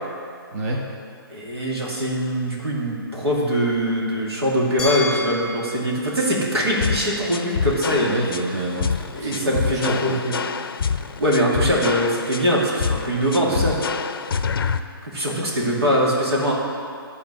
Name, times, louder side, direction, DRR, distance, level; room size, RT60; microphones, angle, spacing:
voice 1, 0.5-0.8 8.0-10.2 13.4-13.6, right 1 dB, 40° right, -3 dB, 1.2 m, -27 dB
voice 2, 1.3-8.1 8.5-8.6 9.1-10.3 11.2-13.8 15.0-16.5, equal, 90° right, -4 dB, 2.6 m, -22 dB
Glass, 4.8-7.7, left 2 dB, 5° left, 2.1 m, -33 dB
sound 1, 6.8-14.8, left 6 dB, 60° left, 0.5 m, -26 dB
12.0 x 4.3 x 6.2 m, 2.3 s
hypercardioid pair, 160°, 13 cm